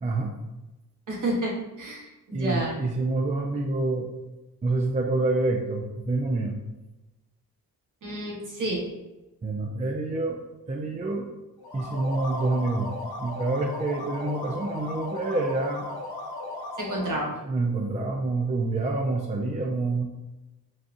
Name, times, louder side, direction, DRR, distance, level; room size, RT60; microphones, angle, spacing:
voice 1, 0.0-0.3 2.3-4.1 4.6-6.6 9.4-10.4 10.7-11.3 11.7-12.9 13.2-15.9 17.4-20.0, right 2 dB, 20° right, 1 dB, 0.4 m, -27 dB
voice 2, 1.1-1.5 1.8-2.7 8.0-8.8 16.8-17.3, right 1 dB, 55° right, -2 dB, 1.1 m, -29 dB
sound 1, 11.6-17.3, left 2 dB, 80° left, 0.7 m, -36 dB
4.0 x 2.4 x 2.5 m, 1.0 s
cardioid pair, 50°, 37 cm